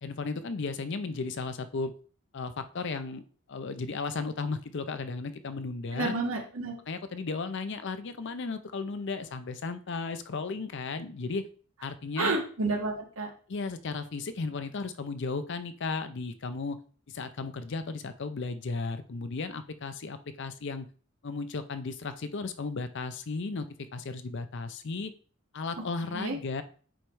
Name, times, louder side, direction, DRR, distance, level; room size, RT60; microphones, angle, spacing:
voice 1, 0.0-1.9 2.3-3.2 3.5-6.1 6.9-11.4 11.8-12.4 13.5-16.8 17.1-20.9 21.2-25.1 25.5-26.6, left 4 dB, 55° left, 11 dB, 0.5 m, -35 dB
voice 2, 5.9-6.7 12.2-13.3 26.1-26.4, right 3 dB, 70° right, 1 dB, 1.6 m, -30 dB
7.9 x 3.1 x 4.6 m, 0.42 s
head